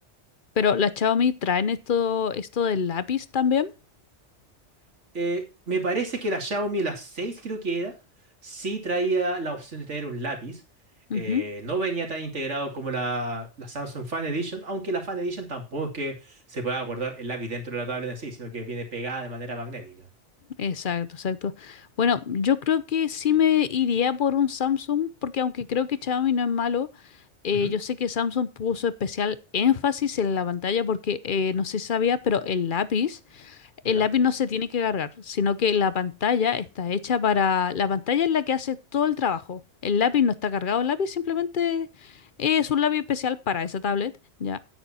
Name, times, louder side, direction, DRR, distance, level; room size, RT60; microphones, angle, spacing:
voice 1, 0.6-3.7 11.1-11.4 20.6-26.9 27.4-33.6 33.8-42.1 42.4-44.1 44.4-44.6, left 7 dB, 50° left, 0.9 m, -25 dB
voice 2, 5.1-7.9 8.4-10.6 11.1-20.1 27.5-27.7 33.8-34.1, right 2 dB, 85° right, 2.8 m, -30 dB
9.6 x 9.0 x 4.3 m
omnidirectional pair, 1.2 m